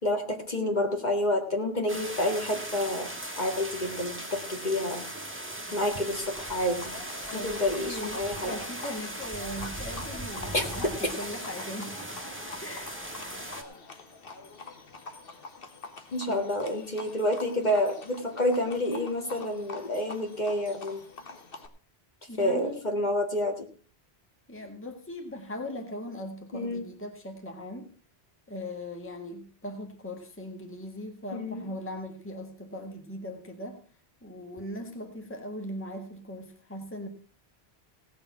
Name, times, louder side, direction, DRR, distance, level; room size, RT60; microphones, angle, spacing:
voice 1, 0.0-3.1 3.4-5.0 5.7-6.9 7.3-8.6 10.5-10.7 16.1-21.0 22.4-23.7 26.5-26.8 31.3-31.7, left 1 dB, 45° left, 3 dB, 2.1 m, -29 dB
sound 1, 1.9-13.6, right 1 dB, 10° right, 1.8 m, -38 dB
Livestock farm animals working animals, 6.1-21.7, left 3 dB, 60° left, 1.6 m, -45 dB
voice 2, 7.9-12.0 12.6-12.9 16.3-16.5 22.3-22.8 24.5-27.9 28.5-33.8 34.2-37.1, left 1 dB, 10° left, 3 dB, 1.6 m, -39 dB
17.0 x 7.0 x 5.9 m, 0.41 s
omnidirectional pair, 1.1 m